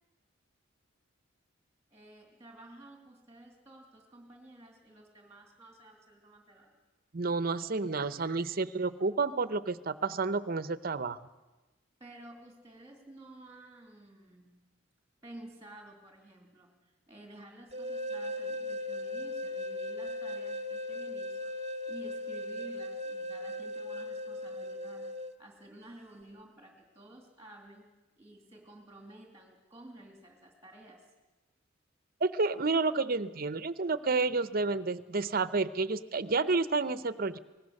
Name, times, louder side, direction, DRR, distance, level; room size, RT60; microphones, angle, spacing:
voice 1, 1.9-6.7 12.0-14.6 15.2-16.8 17.1-21.5 21.9-25.1 25.4-27.9 28.2-31.0, right 1 dB, 15° right, 2 dB, 2.8 m, -52 dB
voice 2, 7.1-11.2 32.2-37.4, right 3 dB, 50° right, 14 dB, 0.8 m, -30 dB
sound 1, 17.7-25.3, left 1 dB, 35° right, 1.1 m, -38 dB
25.5 x 19.0 x 6.6 m, 1.1 s
head